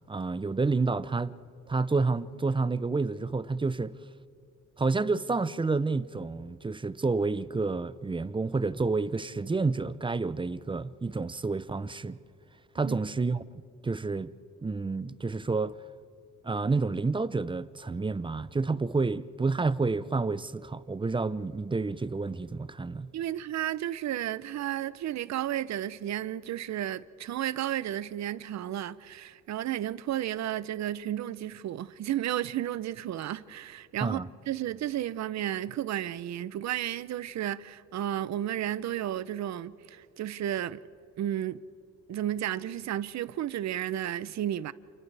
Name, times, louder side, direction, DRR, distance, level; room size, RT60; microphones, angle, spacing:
voice 1, 0.1-1.3 1.7-3.9 4.8-12.2 12.7-13.4 13.8-14.3 14.6-15.8 16.4-23.1 34.0-34.3, right 3 dB, 15° right, 0.6 m, -29 dB
voice 2, 23.1-34.2 34.5-40.8 41.2-41.6 42.1-44.7, right 12 dB, 65° right, 0.7 m, -33 dB
29.0 x 27.5 x 3.4 m
cardioid pair, 90°, 30 cm